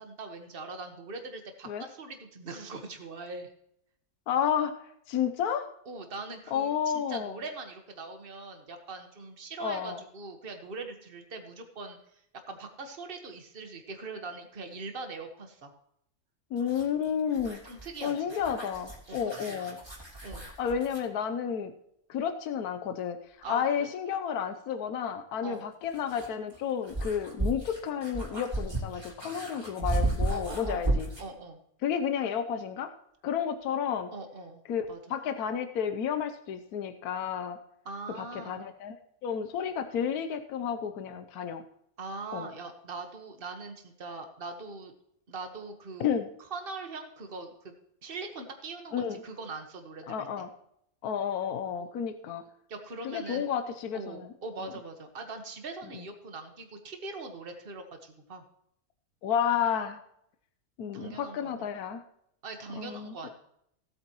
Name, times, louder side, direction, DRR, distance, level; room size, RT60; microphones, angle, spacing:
voice 1, 0.0-3.5 5.9-12.0 12.5-15.7 17.6-18.3 19.1-19.2 19.5-19.6 20.2-20.5 23.4-23.9 25.4-25.7 30.3-31.6 34.1-34.6 34.9-35.0 37.8-38.6 42.0-44.9 45.3-46.1 46.5-47.7 48.0-50.4 51.8-52.0 52.7-53.5 53.9-58.4 60.9-61.7 62.4-63.3, right 3 dB, 40° right, 5 dB, 1.5 m, -41 dB
voice 2, 4.3-4.7 5.1-5.7 6.5-7.4 9.6-10.0 16.5-17.6 18.0-19.8 20.6-21.7 22.1-23.2 23.5-31.1 31.8-32.9 33.2-34.1 34.7-37.6 38.1-39.0 39.2-41.6 42.3-42.5 46.0-46.3 48.9-49.2 50.1-50.5 51.0-52.4 53.0-54.3 54.6-54.7 59.2-60.0 60.8-62.0 62.8-63.1, left 8 dB, 85° left, 9 dB, 1.3 m, -31 dB
sound 1, 16.6-21.1 23.4-23.5 25.5-31.3, right 2 dB, 15° right, 3.1 m, -34 dB
17.5 x 8.6 x 3.0 m, 0.73 s
omnidirectional pair, 1.6 m